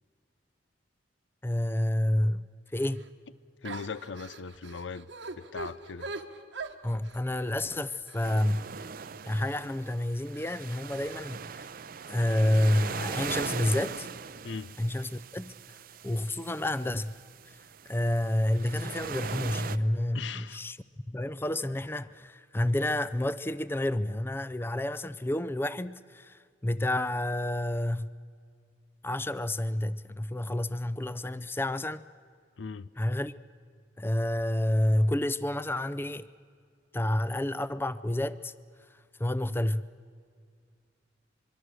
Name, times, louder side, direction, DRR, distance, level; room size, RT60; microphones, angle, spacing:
voice 1, 1.4-2.5 2.7-3.0 6.8-8.6 9.2-11.7 12.1-14.1 14.8-15.8 16.0-17.1 17.5-17.6 17.9-20.8 21.1-28.1 29.0-32.0 33.0-33.3 34.0-36.3 36.9-38.5 39.2-39.9, left 1 dB, 15° left, 0.5 m, -29 dB
sound 1, 2.8-3.1 3.6-9.3 9.8-9.9 10.3-11.2, right 3 dB, 90° right, 1.5 m, -43 dB
voice 2, 3.6-5.1 5.4-6.1 14.4-14.7 20.1-20.6 32.6-32.9, left 5 dB, 90° left, 0.6 m, -39 dB
sound 2, 8.2-19.8, right 6 dB, 50° right, 0.6 m, -40 dB
25.0 x 23.5 x 6.4 m
head